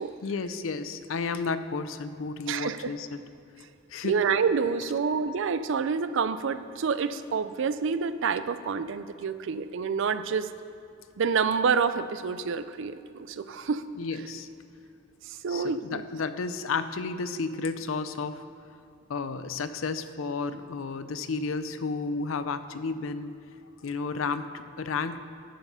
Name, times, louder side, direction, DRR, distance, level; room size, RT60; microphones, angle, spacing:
voice 1, 0.2-3.2 3.9-4.2 14.0-14.5 15.5-18.4 19.1-23.3 23.8-25.2, left 4 dB, 70° left, 11 dB, 0.5 m, -32 dB
voice 2, 2.5-2.9 4.0-10.5 11.2-13.8 15.2-16.0, right 5 dB, 65° right, 13 dB, 0.4 m, -28 dB
10.0 x 7.2 x 5.6 m, 2.6 s
head